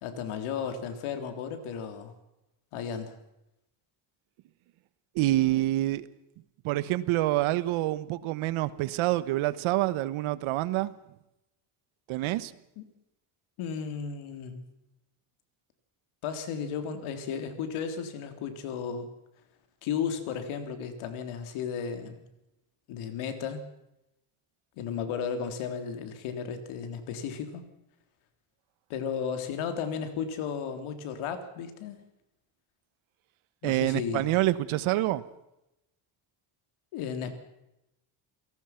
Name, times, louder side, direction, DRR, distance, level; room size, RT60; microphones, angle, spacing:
voice 1, 0.0-2.1 2.7-3.1 12.8-12.9 13.6-14.6 16.2-19.1 19.8-22.2 22.9-23.7 24.8-27.6 28.9-32.0 33.6-34.3 36.9-37.3, left 7 dB, 85° left, 8 dB, 3.5 m, -34 dB
voice 2, 5.1-6.0 6.6-10.9 12.1-12.5 33.6-35.2, right 16 dB, 80° right, 16 dB, 1.3 m, -27 dB
28.5 x 18.0 x 5.9 m, 0.87 s
cardioid pair, 170°, 48 cm